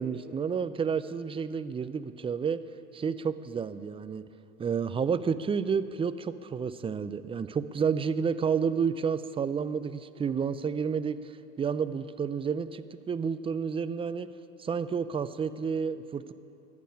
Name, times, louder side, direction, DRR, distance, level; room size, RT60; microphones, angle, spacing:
voice 1, 0.0-2.6 2.9-4.2 4.6-11.3 11.6-14.3 14.6-16.3, right 6 dB, 15° right, 13 dB, 0.5 m, -30 dB
14.5 x 10.5 x 8.6 m, 2.9 s
hypercardioid pair, 90°, 39 cm